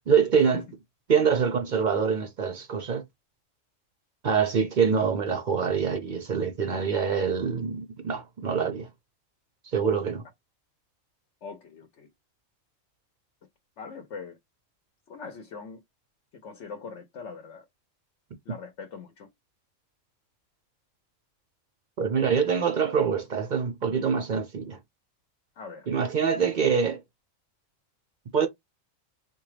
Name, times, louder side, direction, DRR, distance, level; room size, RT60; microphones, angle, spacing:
voice 1, 0.1-0.6 1.1-3.0 4.2-8.9 9.6-10.2 22.0-24.8 25.9-27.0 28.3-28.5, right 6 dB, 50° right, 0.6 m, -25 dB
voice 2, 11.4-12.1 13.8-14.4 15.1-15.8 16.3-17.6 18.5-19.3 25.6-25.9, left 5 dB, 65° left, 1.0 m, -41 dB
3.8 x 2.3 x 3.2 m
omnidirectional pair, 1.4 m